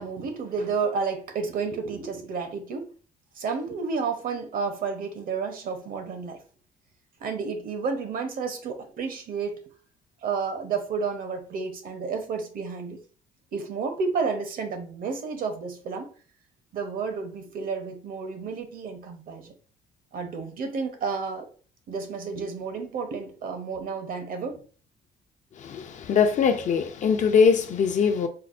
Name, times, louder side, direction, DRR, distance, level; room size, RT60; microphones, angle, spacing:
voice 1, 0.0-2.9 3.3-6.4 7.2-9.6 10.2-13.0 13.5-16.1 16.7-19.5 20.1-21.5 21.9-24.6, right 5 dB, 55° right, 0.8 m, -31 dB
voice 2, 25.6-28.3, left 6 dB, 45° left, 0.5 m, -22 dB
4.5 x 2.0 x 2.5 m
cardioid pair, 110°, 17 cm